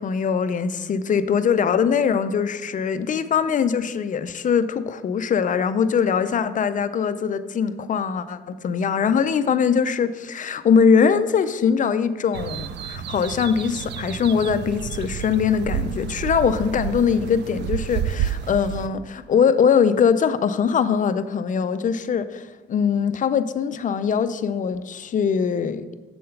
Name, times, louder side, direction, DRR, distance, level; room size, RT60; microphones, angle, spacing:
voice 1, 0.0-26.0, left 6 dB, 40° left, 12 dB, 0.4 m, -22 dB
sound 1, 12.3-18.9, right 9 dB, 60° right, 0.4 m, -30 dB
7.6 x 3.8 x 5.5 m, 1.2 s
cardioid pair, 90°, 20 cm